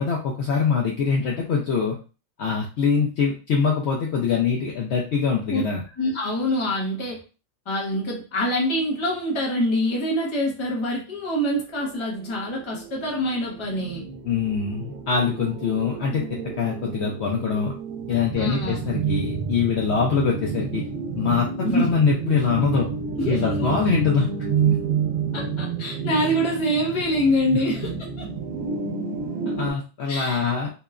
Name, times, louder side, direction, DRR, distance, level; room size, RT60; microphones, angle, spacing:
voice 1, 0.0-2.0 2.4-5.8 14.3-16.2 16.6-17.7 18.1-20.8 21.1-21.5 21.7-22.9 23.3-24.3 24.6-24.7 29.5-30.7, left 6 dB, 65° left, -1 dB, 0.7 m, -23 dB
voice 2, 6.0-7.2 7.7-14.1 18.4-18.8 21.6-21.9 23.2-23.7 25.3-28.3 30.1-30.5, equal, 25° left, -2 dB, 0.7 m, -25 dB
sound 1, 11.8-29.7, right 6 dB, 75° right, 0.9 m, -29 dB
2.9 x 2.2 x 2.3 m, 0.33 s
omnidirectional pair, 1.4 m